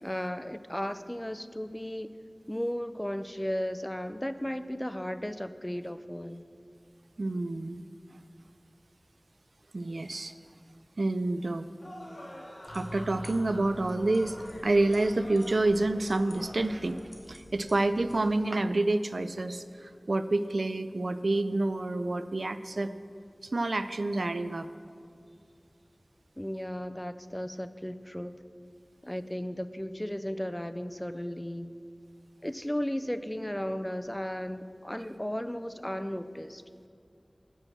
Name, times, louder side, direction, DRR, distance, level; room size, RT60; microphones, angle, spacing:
voice 1, 0.0-2.1 2.5-6.5 26.4-28.4 29.0-31.8 32.4-36.6, equal, 15° left, 12 dB, 0.4 m, -35 dB
voice 2, 7.2-7.8 9.7-10.3 11.0-11.7 12.7-17.0 17.3-22.9 23.5-24.7, right 2 dB, 75° right, 12 dB, 0.3 m, -28 dB
sound 1, 11.8-16.9, equal, 75° left, 2.3 m, -47 dB
sound 2, 12.7-18.2, equal, 35° left, 1.5 m, -47 dB
7.2 x 6.1 x 6.7 m, 2.4 s
wide cardioid pair, 45°, 0 cm